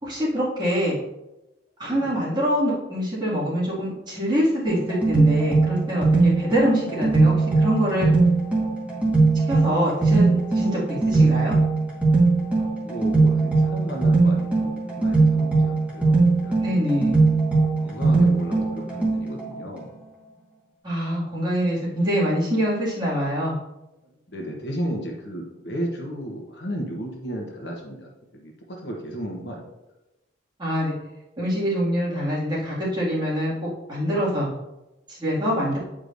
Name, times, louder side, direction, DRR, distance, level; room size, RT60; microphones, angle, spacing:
voice 1, 0.0-1.0 1.8-8.1 9.5-10.2 10.5-11.6 16.6-17.2 20.8-23.5 30.6-30.9 31.4-33.5 33.9-34.5 35.1-35.8, equal, 20° right, -8 dB, 2.3 m, -24 dB
sound 1, 4.7-19.5, right 3 dB, 5° right, 1.6 m, -20 dB
voice 2, 12.6-16.8 17.8-19.9 24.3-29.7, equal, 60° left, 0 dB, 1.1 m, -34 dB
8.6 x 4.9 x 2.6 m, 0.96 s
head